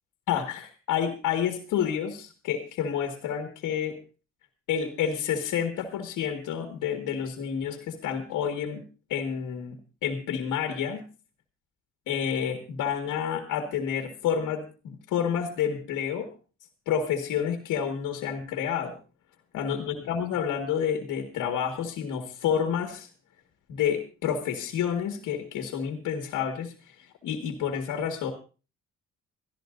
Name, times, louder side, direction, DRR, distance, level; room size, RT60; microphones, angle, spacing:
voice 1, 0.3-4.0 4.7-8.8 9.1-11.0 12.1-16.3 16.9-19.0 19.5-23.1 23.7-28.3, left 8 dB, 85° left, 4 dB, 2.0 m, -29 dB
23.0 x 13.0 x 2.6 m, 0.34 s
cardioid pair, 90°, 30 cm